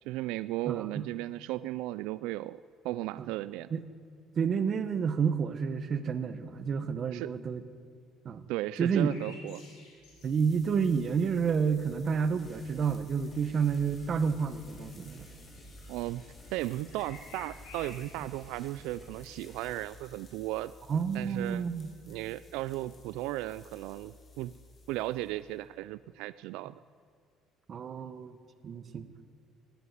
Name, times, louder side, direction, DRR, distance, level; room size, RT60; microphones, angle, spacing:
voice 1, 0.0-2.6 2.8-3.7 7.1-7.3 8.5-9.6 15.9-16.2 16.5-20.7 21.1-21.6 22.1-24.5 24.9-26.8, right 16 dB, 90° right, 16 dB, 0.4 m, -35 dB
voice 2, 0.7-1.1 3.2-3.3 3.7-3.8 4.3-7.6 8.2-8.4 8.8-9.1 10.2-15.3 20.9-21.9 27.7-28.4 28.6-29.1, right 6 dB, 35° right, 12 dB, 1.2 m, -30 dB
sound 1, 9.0-10.4 11.0-11.1 12.2-12.6 12.9-14.1 14.5-14.6 14.9-17.9, left 3 dB, 80° left, 6.7 m, -53 dB
sound 2, 10.0-25.7, left 2 dB, 30° left, 2.9 m, -56 dB
sound 3, 12.4-12.9 13.3-19.8, equal, 10° left, 7.3 m, -52 dB
16.5 x 16.0 x 9.5 m, 2.4 s
cardioid pair, 145°, 0 cm